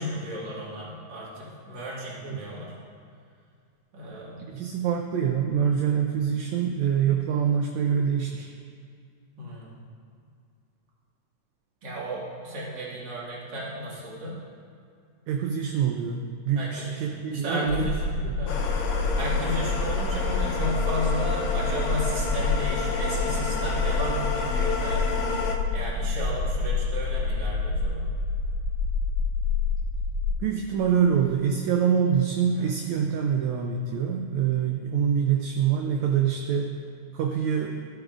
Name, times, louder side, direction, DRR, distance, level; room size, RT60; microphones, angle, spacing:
voice 1, 0.0-2.7 3.9-4.5 9.4-9.7 11.8-14.4 16.5-18.6 19.2-25.1 25.7-28.1 32.5-32.7, equal, 40° right, -6 dB, 2.1 m, -34 dB
voice 2, 4.4-8.5 15.3-17.9 18.2-18.4 30.4-36.7 37.1-37.7, right 8 dB, 80° right, 3 dB, 1.7 m, -25 dB
sound 1, 17.7-30.3, left 4 dB, 55° left, 1.6 m, -27 dB
sound 2, 18.5-25.6, left 4 dB, 70° left, 1.8 m, -31 dB
14.0 x 8.5 x 2.5 m, 2.3 s
omnidirectional pair, 3.7 m